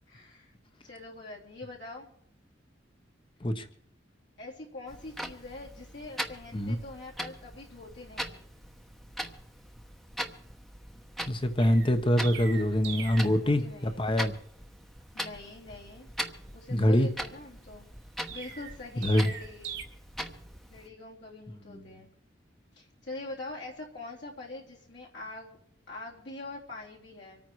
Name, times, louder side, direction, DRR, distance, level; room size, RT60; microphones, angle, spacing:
voice 1, 0.1-0.5 0.8-2.1 4.4-8.4 13.4-14.0 15.1-16.1 16.5-17.9 18.3-19.8 20.7-22.1 22.7-25.6 25.9-27.4, left 2 dB, 65° left, -3 dB, 3.4 m, -44 dB
Clock, 4.9-20.9, equal, ahead, 1.0 m, -41 dB
voice 2, 11.3-14.3 16.7-17.1 19.0-19.3 21.7-21.8, equal, 30° left, 8 dB, 1.1 m, -25 dB
Chirp tweet, 11.6-13.4 18.3-19.8, right 7 dB, 70° right, 1.7 m, -41 dB
26.0 x 9.2 x 4.7 m, 0.66 s
head